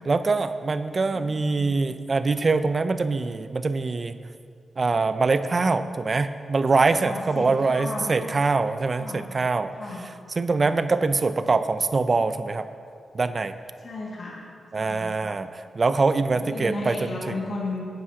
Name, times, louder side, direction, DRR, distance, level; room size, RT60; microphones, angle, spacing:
voice 1, 0.1-4.2 4.8-9.7 10.4-12.7 13.1-13.5 14.7-17.3, right 3 dB, 50° right, 11 dB, 0.5 m, -24 dB
voice 2, 1.1-1.7 7.0-8.3 9.0-9.2 9.7-10.1 13.8-14.5 14.7-15.4 16.3-17.8, left 2 dB, 60° left, -4 dB, 2.1 m, -34 dB
15.0 x 9.4 x 2.9 m, 2.3 s
supercardioid pair, 45°, 0 cm